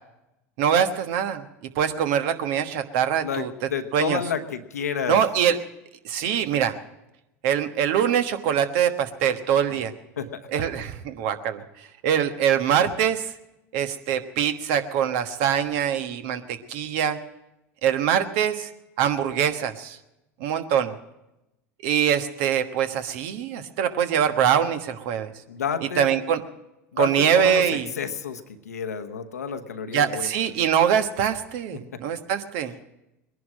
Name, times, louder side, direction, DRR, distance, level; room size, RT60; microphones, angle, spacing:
voice 1, 0.6-1.5 1.7-3.5 3.9-4.2 5.1-5.6 6.0-6.8 7.4-9.9 10.5-13.3 13.7-17.2 17.8-18.7 19.0-20.0 20.4-21.0 21.8-25.3 26.0-26.4 27.0-27.9 29.9-32.7, right 9 dB, 65° right, 8 dB, 1.3 m, -23 dB
voice 2, 3.2-5.2 10.2-10.7 25.5-26.1 26.9-30.5 31.7-32.0, left 7 dB, 90° left, 7 dB, 1.1 m, -31 dB
20.5 x 11.0 x 6.3 m, 0.91 s
hypercardioid pair, 85°, 8 cm